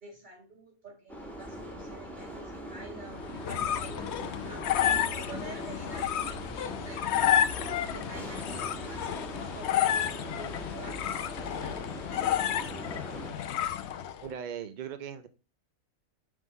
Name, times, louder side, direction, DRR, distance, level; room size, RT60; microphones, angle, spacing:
voice 1, 0.0-4.8 5.1-7.4 7.9-12.5, right 2 dB, 35° right, 2 dB, 2.0 m, -48 dB
sound 1, 1.1-13.3, right 1 dB, ahead, 1.2 m, -42 dB
sound 2, 3.1-14.3, left 10 dB, 65° left, 0.8 m, -31 dB
sound 3, 3.4-14.1, left 8 dB, 90° left, 1.2 m, -44 dB
voice 2, 14.2-15.3, right 8 dB, 65° right, 10 dB, 0.4 m, -38 dB
6.4 x 3.7 x 5.1 m, 0.32 s
omnidirectional pair, 1.4 m